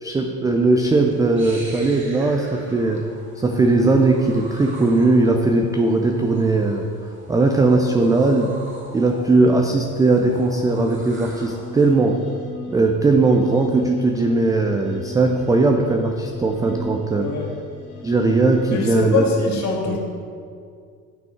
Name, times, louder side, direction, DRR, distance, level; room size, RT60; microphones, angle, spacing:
voice 1, 0.0-3.0 3.4-6.8 7.3-8.5 8.9-12.2 12.7-17.3 18.0-19.3 19.9-20.0, right 3 dB, 10° right, 3 dB, 0.4 m, -18 dB
sound 1, 0.9-11.9, right 2 dB, 25° right, 1.9 m, -42 dB
sound 2, 11.4-19.0, left 4 dB, 75° left, 1.6 m, -37 dB
voice 2, 18.7-20.0, left 5 dB, 35° left, -2 dB, 2.0 m, -23 dB
10.5 x 6.0 x 3.5 m, 2.3 s
figure-of-eight pair, 65°, 46 cm